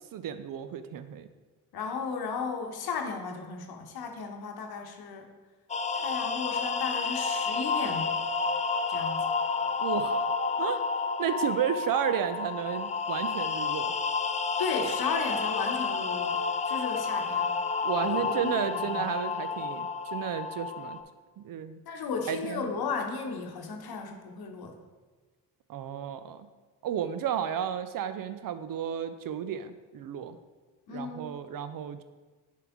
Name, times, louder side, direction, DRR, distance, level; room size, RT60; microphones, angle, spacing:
voice 1, 0.1-1.3 9.8-10.3 10.6-10.8 11.2-13.9 17.8-21.0 21.4-21.8 22.3-22.7 25.7-26.5 26.8-30.4 30.9-32.0, right 9 dB, 60° right, 11 dB, 0.5 m, -32 dB
voice 2, 1.7-5.3 5.9-8.1 8.9-9.3 14.6-17.5 18.0-19.0 21.9-24.8 30.9-31.4, left 5 dB, 65° left, 4 dB, 1.0 m, -35 dB
sound 1, 5.7-21.0, left 5 dB, 20° left, 0.4 m, -30 dB
6.8 x 4.7 x 3.6 m, 1.3 s
supercardioid pair, 50°, 40 cm